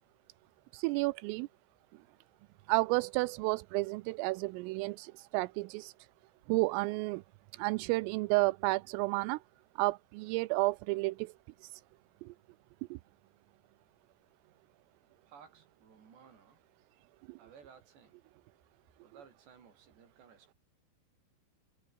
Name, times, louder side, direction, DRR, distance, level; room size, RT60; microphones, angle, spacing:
voice 1, 0.7-1.5 2.7-5.9 6.5-7.2 7.5-9.4 9.8-11.3 11.6-11.8 12.2-12.3 12.9-13.0 17.3-17.4, right 24 dB, 85° right, 3.3 m, -31 dB
voice 2, 15.3-16.6 17.4-18.2 19.0-20.6, right 7 dB, 60° right, 6.8 m, -58 dB
omnidirectional pair, 5.8 m